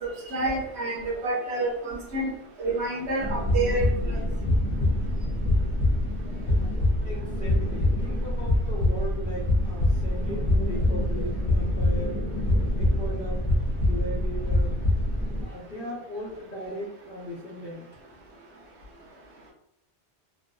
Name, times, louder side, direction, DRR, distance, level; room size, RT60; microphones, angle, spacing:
voice 1, 0.0-2.3 2.6-3.8, right 2 dB, 80° right, -2 dB, 1.1 m, -28 dB
sound 1, 3.2-15.4, left 1 dB, 25° left, 1.0 m, -25 dB
voice 2, 7.0-12.3 12.8-13.4 13.8-14.7 15.5-17.9, equal, 60° left, -7 dB, 1.0 m, -37 dB
3.1 x 2.5 x 2.2 m, 0.78 s
omnidirectional pair, 1.1 m